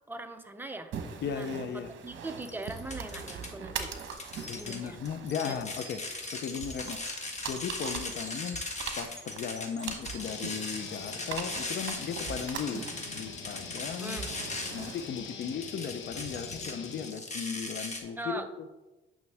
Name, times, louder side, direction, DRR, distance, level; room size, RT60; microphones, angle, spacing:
voice 1, 0.1-0.9 1.3-3.9 4.6-5.0 5.4-5.6 14.0-14.3 18.2-18.5, right 2 dB, 10° right, 6 dB, 0.8 m, -40 dB
sound 1, 0.9-16.7, right 7 dB, 70° right, 1.0 m, -43 dB
voice 2, 1.2-1.9 4.3-6.0 6.3-7.0 7.5-8.6 9.0-12.8 13.1-14.3 14.7-18.7, left 7 dB, 60° left, 9 dB, 0.6 m, -36 dB
sound 2, 2.4-3.5 3.8-18.0, left 2 dB, 35° left, 1.5 m, -39 dB
sound 3, 10.2-17.1, left 6 dB, 75° left, 1.1 m, -44 dB
9.4 x 5.9 x 3.5 m, 1.1 s
cardioid pair, 90°, 20 cm